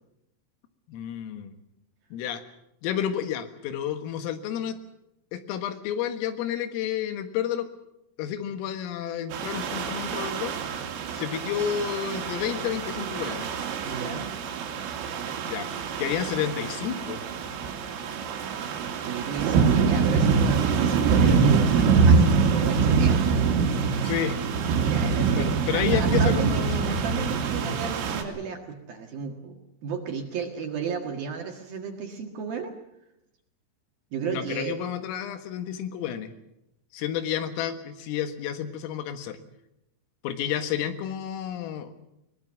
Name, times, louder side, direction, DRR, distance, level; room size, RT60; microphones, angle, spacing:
voice 1, 0.9-1.6 2.1-2.4 2.8-4.8 5.3-7.7 8.2-10.6 11.1-13.5 15.5-15.7 16.0-17.2 24.0-24.4 25.4-27.0 34.2-36.3 36.9-39.4 40.2-41.9, left 9 dB, 90° left, 8 dB, 4.2 m, -30 dB
sound 1, 9.3-28.2, right 5 dB, 85° right, 4.9 m, -24 dB
voice 2, 13.8-14.3 19.1-23.2 24.8-32.7 34.1-34.8, right 6 dB, 60° right, 3 dB, 2.9 m, -34 dB
22.0 x 21.0 x 7.4 m, 0.84 s
omnidirectional pair, 5.8 m